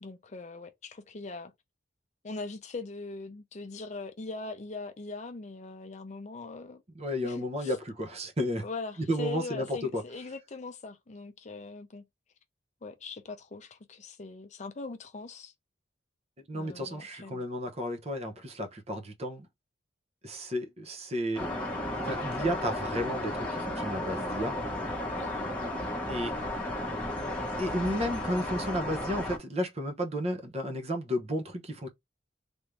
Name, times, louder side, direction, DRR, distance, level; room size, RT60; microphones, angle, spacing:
voice 1, 0.0-1.5 2.2-6.8 7.2-7.8 8.6-12.0 12.8-15.5 16.5-17.4 25.1-25.5, left 3 dB, 35° left, 0.5 m, -41 dB
voice 2, 6.9-8.6 9.1-10.0 16.5-19.5 20.2-21.5 22.0-24.6 26.1-26.3 27.6-31.9, equal, 35° right, 0.8 m, -32 dB
sound 1, 21.4-29.4, left 1 dB, 5° left, 1.1 m, -34 dB
3.4 x 2.7 x 3.2 m
head